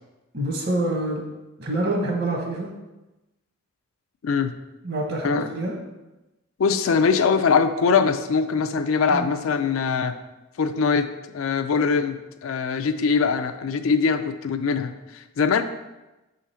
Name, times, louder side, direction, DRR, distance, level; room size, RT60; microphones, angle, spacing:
voice 1, 0.3-1.2 1.6-2.7 4.8-5.7 9.1-9.3, right 1 dB, 50° right, 0 dB, 1.2 m, -26 dB
voice 2, 6.6-10.2 10.6-11.1 11.3-15.6, left 5 dB, 85° left, 9 dB, 0.4 m, -22 dB
5.7 x 3.8 x 4.3 m, 1.0 s
head